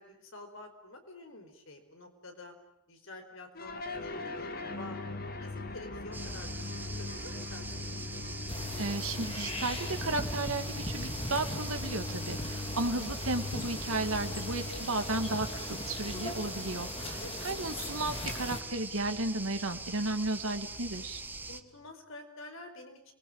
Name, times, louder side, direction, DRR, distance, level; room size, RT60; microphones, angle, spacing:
voice 1, 0.0-2.5 2.9-5.0 5.4-7.9 16.5-17.3 21.5-23.1, left 2 dB, 70° left, 5 dB, 4.9 m, -49 dB
sound 1, 3.5-21.9, left 2 dB, 45° left, 2.2 m, -42 dB
sound 2, 6.1-21.6, right 3 dB, 10° right, 1.0 m, -43 dB
sound 3, 8.5-18.6, left 1 dB, 25° left, 3.2 m, -40 dB
voice 2, 8.8-21.2, right 2 dB, 75° right, 7 dB, 2.2 m, -34 dB
28.0 x 21.5 x 8.9 m, 0.80 s
head